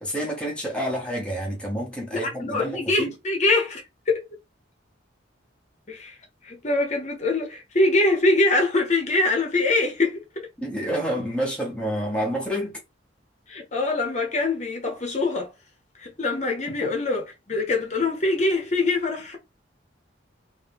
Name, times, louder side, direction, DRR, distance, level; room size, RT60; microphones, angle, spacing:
voice 1, 0.0-3.1 10.6-12.8 16.8-16.9, equal, 5° left, 1.0 m, -28 dB
voice 2, 2.1-4.2 5.9-6.2 6.4-10.2 13.5-15.5 16.0-19.4, left 2 dB, 40° left, 1.0 m, -24 dB
3.2 x 2.8 x 3.4 m
head